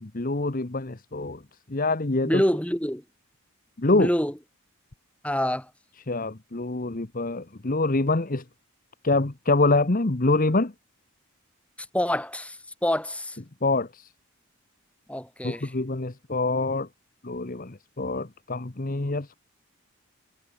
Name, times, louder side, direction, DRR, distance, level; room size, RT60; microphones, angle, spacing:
voice 1, 0.0-1.4 1.7-2.4 3.8-4.1 6.1-8.4 9.0-10.7 13.6-14.1 15.4-16.9 17.2-19.3, left 2 dB, 40° left, 1.1 m, -25 dB
voice 2, 2.2-3.0 3.9-4.3 5.2-5.7 11.9-13.4 15.1-15.7, equal, 5° left, 4.6 m, -26 dB
head